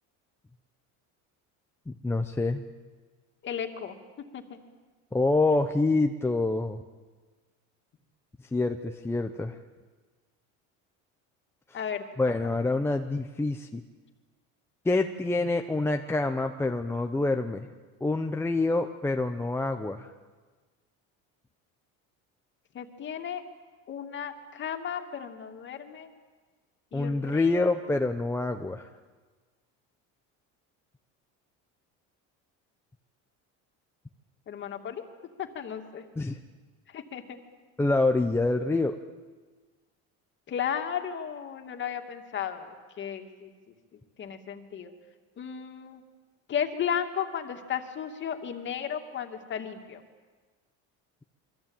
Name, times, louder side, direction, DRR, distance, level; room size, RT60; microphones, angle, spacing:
voice 1, 1.9-2.6 5.1-6.8 8.5-9.6 12.2-13.8 14.8-17.7 18.0-20.1 26.9-28.9 36.2-36.4 37.8-39.0, left 2 dB, 5° left, 5 dB, 0.8 m, -26 dB
voice 2, 3.4-4.0 4.3-4.6 11.7-12.0 22.7-23.4 23.9-26.1 26.9-27.7 34.5-35.0 35.4-36.1 36.9-37.4 40.5-43.5 44.2-44.9 45.4-46.0 46.5-50.0, left 8 dB, 35° left, 5 dB, 2.6 m, -34 dB
28.0 x 24.0 x 9.0 m, 1.4 s
cardioid pair, 150°, 35 cm